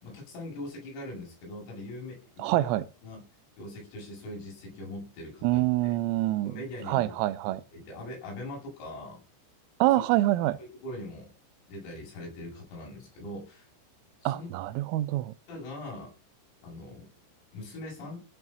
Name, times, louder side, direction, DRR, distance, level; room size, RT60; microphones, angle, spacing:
voice 1, 0.0-2.7 3.0-3.2 3.6-5.9 6.4-7.2 7.5-9.2 10.6-11.3 11.7-13.7 14.2-14.5 15.5-16.1 16.6-17.1 17.5-18.2, left 1 dB, 85° left, 9.8 m, -41 dB
voice 2, 2.4-2.9 5.4-7.6 9.8-10.6 14.3-15.3, right 16 dB, 85° right, 3.4 m, -26 dB
16.0 x 6.0 x 7.6 m
omnidirectional pair, 6.0 m